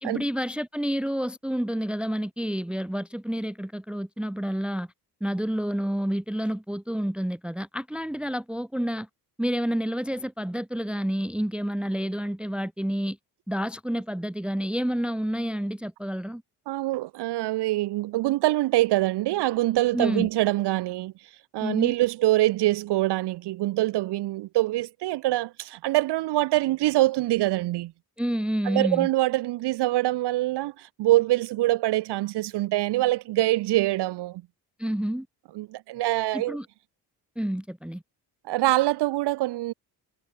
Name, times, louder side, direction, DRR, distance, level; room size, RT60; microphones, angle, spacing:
voice 1, 0.0-4.9 5.2-9.1 9.4-13.2 13.5-16.4 19.9-20.3 21.6-21.9 28.2-29.1 34.8-35.3 36.3-36.7 37.4-38.0, equal, 5° right, 0.8 m, -29 dB
voice 2, 16.7-21.1 21.5-27.9 28.6-34.4 35.5-36.6 38.5-39.7, right 17 dB, 70° right, 0.8 m, -24 dB
cardioid pair, 75°, 42 cm